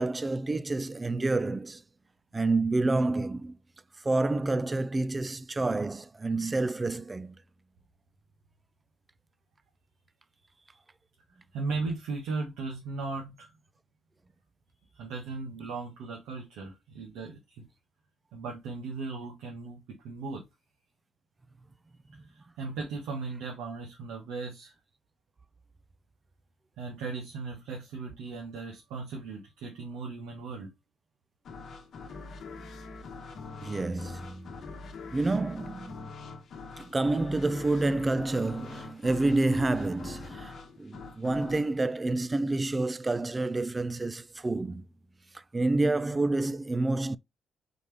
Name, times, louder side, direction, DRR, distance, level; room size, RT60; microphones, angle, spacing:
voice 1, 0.0-1.8 2.3-3.6 4.0-7.4 22.1-22.2 33.6-34.6 35.1-36.1 36.8-44.9 45.3-47.2, right 2 dB, 25° right, 0.4 m, -28 dB
voice 2, 11.5-13.5 14.9-17.7 18.3-20.4 22.6-24.7 26.8-30.7, right 4 dB, 80° right, 1.2 m, -37 dB
sound 1, 31.4-42.9, left 4 dB, 60° left, 1.1 m, -44 dB
4.0 x 3.4 x 3.3 m
supercardioid pair, 70°, 0 cm